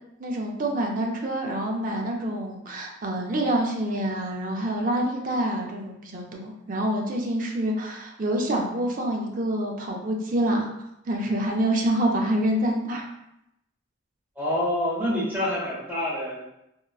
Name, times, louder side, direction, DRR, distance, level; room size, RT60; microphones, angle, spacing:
voice 1, 0.2-10.7 11.1-13.0, right 1 dB, 45° right, 0 dB, 0.5 m, -26 dB
voice 2, 14.4-16.4, left 1 dB, 10° right, -6 dB, 0.7 m, -27 dB
3.8 x 2.1 x 2.3 m, 0.84 s
head